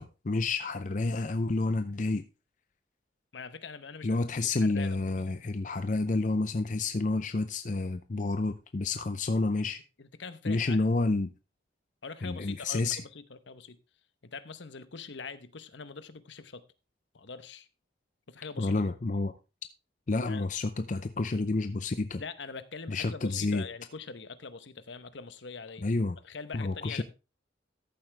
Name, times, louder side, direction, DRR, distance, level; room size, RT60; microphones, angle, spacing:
voice 1, 0.0-2.2 4.0-9.8 10.5-11.3 12.2-13.0 18.6-19.3 20.1-22.2 22.9-23.6 25.8-26.2 26.5-27.0, left 3 dB, 40° left, 0.5 m, -29 dB
voice 2, 3.3-4.1 4.4-5.0 10.0-10.9 12.0-13.8 14.2-16.6 17.1-17.7 18.3-18.7 20.3-20.5 22.2-25.8 26.2-27.0, left 4 dB, 70° left, 0.9 m, -43 dB
14.0 x 7.4 x 3.3 m
head